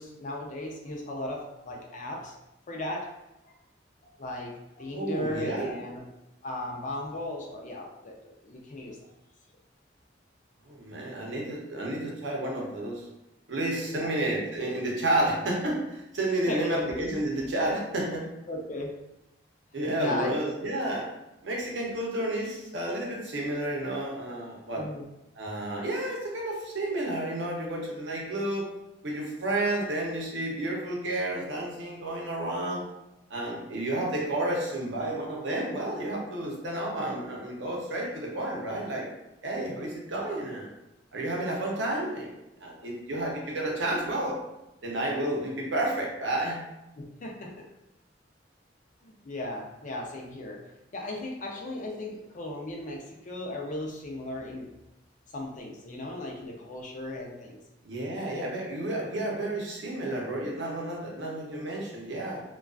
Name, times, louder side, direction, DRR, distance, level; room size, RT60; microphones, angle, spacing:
voice 1, 0.0-2.4 2.7-3.2 3.4-3.6 4.0-6.0 6.4-9.0 13.9-14.1 16.5-16.9 18.5-19.0 20.0-20.5 24.8-25.1 47.0-47.6 49.0-50.6 50.9-54.7 55.3-57.6, left 1 dB, 45° left, 0 dB, 0.4 m, -36 dB
voice 2, 4.9-5.8 10.7-13.1 13.5-18.3 19.7-21.1 21.4-24.9 25.4-28.7 29.0-32.8 33.3-39.1 39.4-40.7 41.1-42.3 42.6-44.4 44.8-46.6 57.8-62.4, right 1 dB, 80° right, -2 dB, 0.7 m, -31 dB
2.4 x 2.2 x 2.3 m, 0.91 s
head